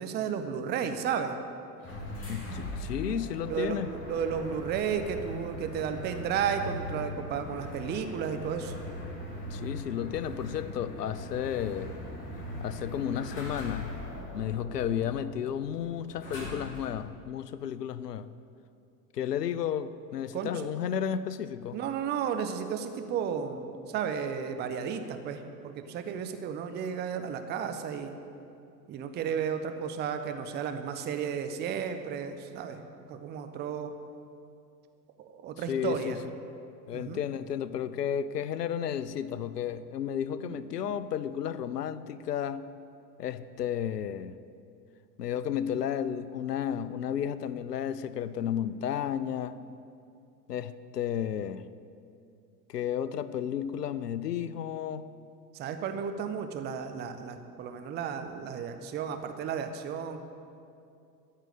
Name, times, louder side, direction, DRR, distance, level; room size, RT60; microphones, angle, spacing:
voice 1, 0.0-1.4 3.4-8.8 20.3-20.7 21.7-28.1 28.9-33.9 35.2-36.2 36.9-37.2 40.4-41.0 55.5-60.2, right 7 dB, 20° right, 7 dB, 0.7 m, -33 dB
sound 1, 1.8-17.0, left 1 dB, 25° left, 3.4 m, -40 dB
voice 2, 2.3-3.9 9.5-11.9 12.6-13.9 14.3-18.3 19.1-21.8 35.7-36.2 36.9-42.7 43.2-44.3 45.2-49.6 50.5-51.7 52.7-55.1, left 9 dB, 70° left, 15 dB, 0.6 m, -32 dB
13.5 x 5.6 x 8.1 m, 2.5 s
figure-of-eight pair, 85°, 49 cm